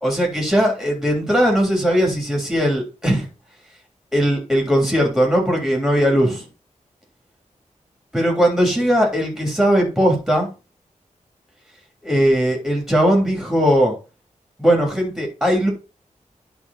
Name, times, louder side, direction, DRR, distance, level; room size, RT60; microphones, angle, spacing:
voice 1, 0.0-3.2 4.1-6.4 8.1-10.5 12.0-13.9 14.6-15.7, equal, ahead, 3.3 m, -18 dB
10.5 x 3.9 x 4.1 m
wide cardioid pair, 125°, 13 cm